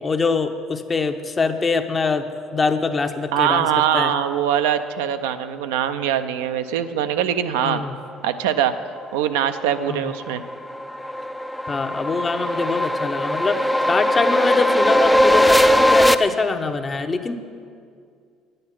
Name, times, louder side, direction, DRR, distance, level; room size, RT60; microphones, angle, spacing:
voice 1, 0.0-2.3 2.5-3.7 3.9-4.1 7.6-7.9 9.9-10.1 11.7-17.3, left 4 dB, 30° left, 7 dB, 0.8 m, -23 dB
voice 2, 3.3-7.8 8.2-8.7 9.1-10.4, right 10 dB, 75° right, 9 dB, 0.4 m, -22 dB
sound 1, 9.6-16.1, equal, 5° left, 0.4 m, -19 dB
9.9 x 7.8 x 5.9 m, 2.2 s
hypercardioid pair, 60°, 0 cm